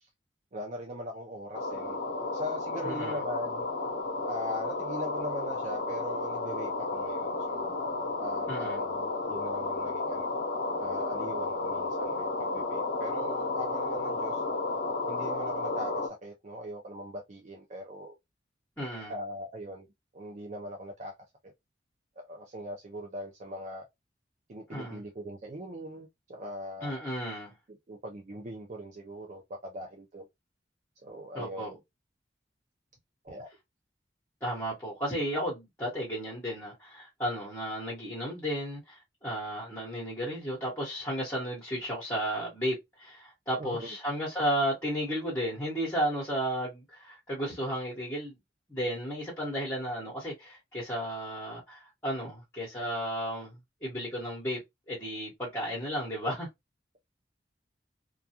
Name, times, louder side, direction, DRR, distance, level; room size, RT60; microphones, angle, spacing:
voice 1, 0.5-3.7 4.2-7.8 8.2-10.4 10.8-14.4 15.1-18.2 19.1-19.9 20.1-21.1 21.4-21.5 22.2-23.9 24.5-27.0 27.7-30.3 31.0-31.8 33.2-33.5 43.6-43.9, equal, 45° right, 0.5 m, -40 dB
sound 1, 1.5-16.1, left 3 dB, 80° left, 0.7 m, -32 dB
voice 2, 2.8-3.2 8.5-8.8 18.8-19.1 24.7-25.0 26.8-27.5 31.3-31.7 34.4-48.4 48.7-54.6 54.9-56.5, equal, 15° left, 1.1 m, -33 dB
2.3 x 2.3 x 2.8 m
head